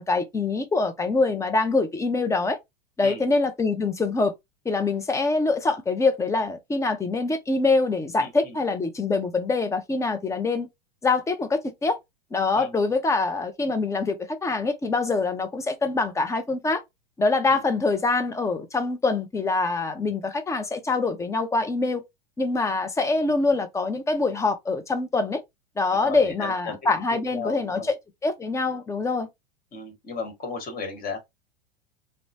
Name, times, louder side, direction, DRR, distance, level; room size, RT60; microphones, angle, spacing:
voice 1, 0.0-2.6 3.0-4.3 4.7-10.7 11.0-12.0 12.3-16.8 17.2-22.0 22.4-25.4 25.8-27.9 28.2-29.3, left 3 dB, 10° left, 0.4 m, -24 dB
voice 2, 8.2-8.6 12.5-12.8 17.4-17.6 25.9-26.7 27.3-27.9 29.7-31.2, left 4 dB, 30° left, 1.3 m, -35 dB
2.9 x 2.0 x 2.6 m
hypercardioid pair, 95°, 30 cm